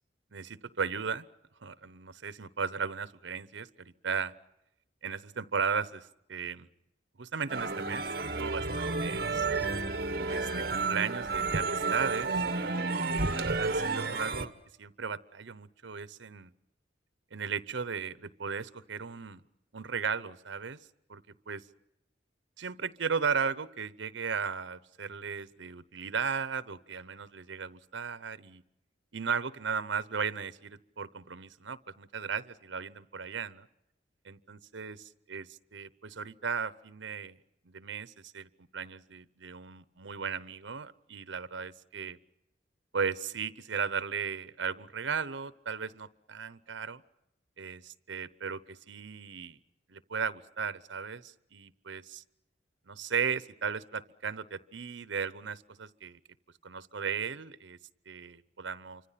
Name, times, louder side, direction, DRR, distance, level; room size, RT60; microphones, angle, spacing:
voice 1, 0.3-1.3 1.6-4.3 5.0-6.7 7.2-9.5 10.3-12.3 12.6-14.5 14.8-16.5 17.3-19.4 19.7-20.8 21.1-21.7 22.6-28.6 29.1-33.7 34.2-37.4 37.7-42.2 42.9-47.0 47.6-49.6 49.9-52.2 52.9-56.2 56.6-57.8 58.1-59.0, right 6 dB, 85° right, 16 dB, 0.8 m, -36 dB
sound 1, 7.5-14.5, right 3 dB, 55° right, 1.3 m, -31 dB
28.0 x 25.5 x 5.8 m, 0.87 s
head